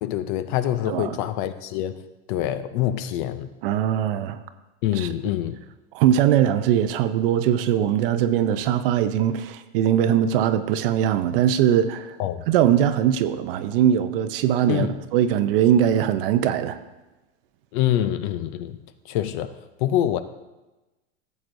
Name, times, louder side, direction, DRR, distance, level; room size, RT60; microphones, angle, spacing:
voice 1, 0.0-2.0 2.3-3.5 4.8-5.6 12.2-12.4 14.7-15.0 17.7-18.8 19.1-20.2, left 12 dB, 45° left, 0.6 m, -25 dB
voice 2, 3.6-4.4 4.9-5.1 5.9-12.2 12.5-16.8, right 10 dB, 50° right, 0.7 m, -21 dB
14.5 x 7.8 x 2.6 m
supercardioid pair, 150°, 36 cm